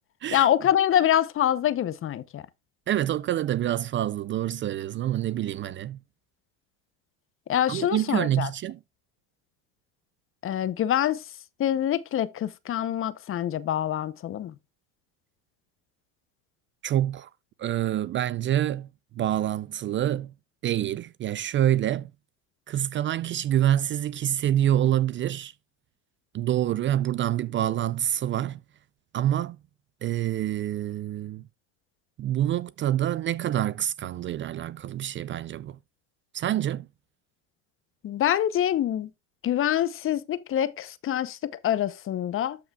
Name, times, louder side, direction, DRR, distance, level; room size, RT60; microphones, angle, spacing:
voice 1, 0.3-2.4 7.5-8.5 10.4-11.2 11.6-14.5 38.0-39.1 39.4-42.6, left 11 dB, 35° left, 0.7 m, -25 dB
voice 2, 2.9-6.0 7.7-8.8 16.8-17.3 17.6-18.9 19.2-20.3 20.6-22.1 22.7-25.5 26.3-28.6 29.1-29.6 30.0-31.4 32.2-35.8 36.3-36.9, right 12 dB, 30° right, 0.4 m, -26 dB
13.0 x 5.9 x 2.3 m
supercardioid pair, 95°, 37 cm